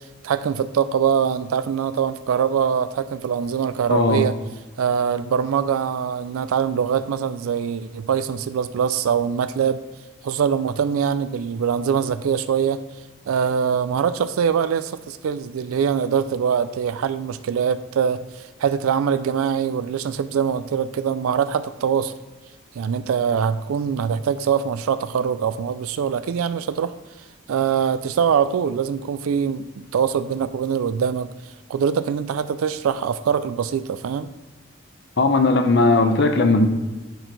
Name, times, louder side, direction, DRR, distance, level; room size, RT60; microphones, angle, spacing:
voice 1, 0.2-4.3 4.8-9.8 10.2-12.8 13.3-22.2 22.8-26.9 27.5-31.3 31.7-34.3, right 7 dB, 85° right, 12 dB, 0.4 m, -23 dB
voice 2, 3.9-4.2 35.2-36.7, left 3 dB, 55° left, 7 dB, 0.7 m, -17 dB
10.5 x 4.5 x 3.9 m, 1.2 s
head